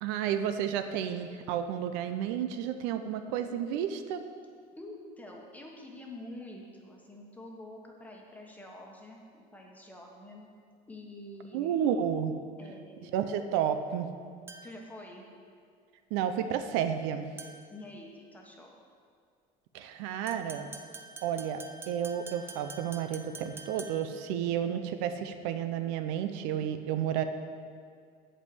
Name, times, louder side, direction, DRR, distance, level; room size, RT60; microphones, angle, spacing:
voice 1, 0.0-4.2 11.5-12.3 13.1-14.1 16.1-17.3 19.7-20.7 21.2-27.2, right 9 dB, 80° right, 9 dB, 0.6 m, -31 dB
voice 2, 4.8-10.5 10.9-11.8 12.6-13.2 14.6-15.2 17.7-18.7, left 1 dB, 10° left, -1 dB, 1.1 m, -47 dB
sound 1, 14.5-14.9 17.4-17.8 20.3-24.2, right 3 dB, 15° right, 0.5 m, -47 dB
8.2 x 5.5 x 7.8 m, 2.1 s
cardioid pair, 160°, 18 cm